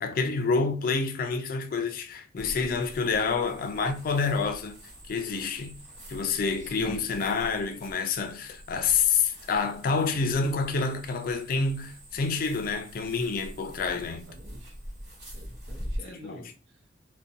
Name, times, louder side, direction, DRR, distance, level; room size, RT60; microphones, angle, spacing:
voice 1, 0.0-4.8 5.1-5.8 6.1-14.3 16.1-16.5, left 4 dB, 55° left, 0.4 m, -28 dB
sound 1, 2.4-16.0, equal, 65° right, 1.2 m, -44 dB
voice 2, 6.6-7.2 13.9-14.8 15.3-16.9, right 1 dB, 85° right, 0.6 m, -48 dB
2.5 x 2.1 x 2.6 m
head